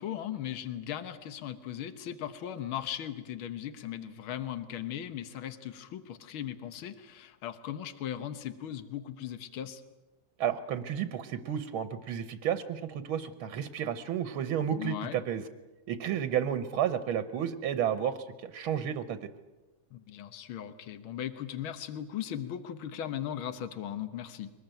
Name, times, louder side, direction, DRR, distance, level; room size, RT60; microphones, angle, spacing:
voice 1, 0.0-9.8 14.7-15.2 19.9-24.5, left 10 dB, 80° left, 11 dB, 1.9 m, -38 dB
voice 2, 10.4-15.4 15.9-19.3, right 9 dB, 90° right, 11 dB, 1.9 m, -32 dB
23.5 x 19.5 x 9.1 m, 1.1 s
omnidirectional pair, 2.2 m